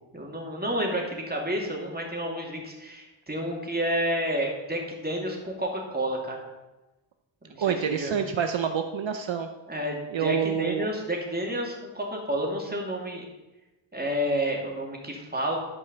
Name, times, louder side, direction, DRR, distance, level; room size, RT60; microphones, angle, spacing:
voice 1, 0.1-6.5 7.4-8.2 9.7-13.2 13.9-15.6, equal, 20° right, -1 dB, 2.6 m, -30 dB
voice 2, 7.6-9.5 10.1-10.9, right 7 dB, 65° right, 6 dB, 0.7 m, -27 dB
12.0 x 5.4 x 6.9 m, 1.1 s
wide cardioid pair, 110°, 49 cm